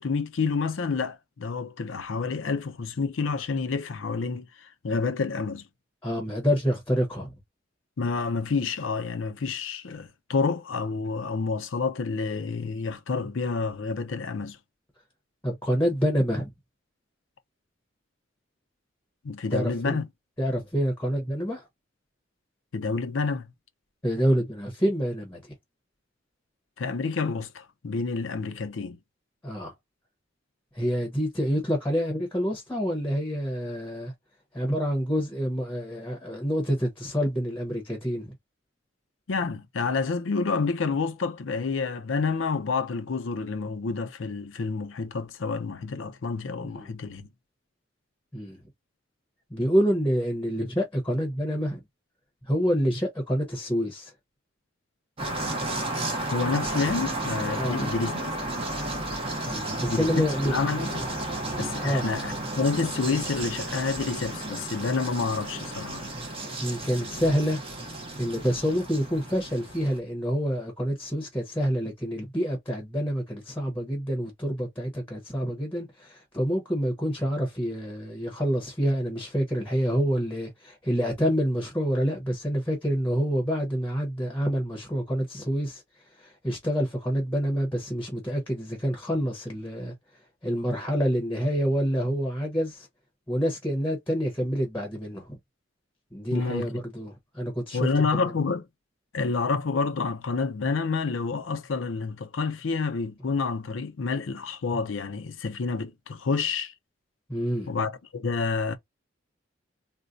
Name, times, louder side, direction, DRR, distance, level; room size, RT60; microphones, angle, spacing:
voice 1, 0.0-5.7 8.0-14.6 19.2-20.1 22.7-23.5 26.8-29.0 39.3-47.3 56.3-58.4 59.9-61.1 61.6-66.0 96.3-96.7 97.7-98.7 99.1-106.7 107.7-108.8, left 4 dB, 85° left, 0.6 m, -29 dB
voice 2, 6.0-7.3 15.4-16.5 19.5-20.0 20.4-21.7 24.0-25.5 29.4-29.7 30.7-34.1 34.5-38.3 46.7-46.9 48.3-48.6 49.5-51.8 52.5-54.1 57.6-57.9 59.5-60.6 61.5-62.1 66.6-67.6 68.2-85.8 86.2-89.9 90.4-92.9 93.3-95.4 96.1-97.9 98.2-98.3 107.3-107.7, equal, 10° left, 0.9 m, -27 dB
sound 1, 55.2-70.0, right 1 dB, 30° right, 0.9 m, -33 dB
4.0 x 2.1 x 2.5 m
head